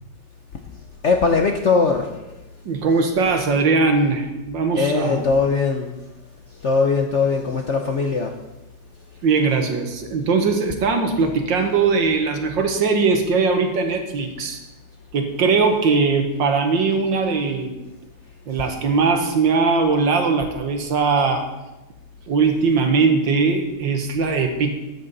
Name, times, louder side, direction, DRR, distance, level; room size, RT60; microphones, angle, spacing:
voice 1, 1.0-2.3 4.7-6.0 6.5-8.4, left 4 dB, 55° left, 3 dB, 0.8 m, -20 dB
voice 2, 2.7-5.2 9.2-14.6 15.1-17.8 18.5-21.5 22.3-24.7, right 4 dB, 70° right, 5 dB, 1.9 m, -20 dB
13.5 x 9.4 x 4.1 m, 1.0 s
omnidirectional pair, 2.1 m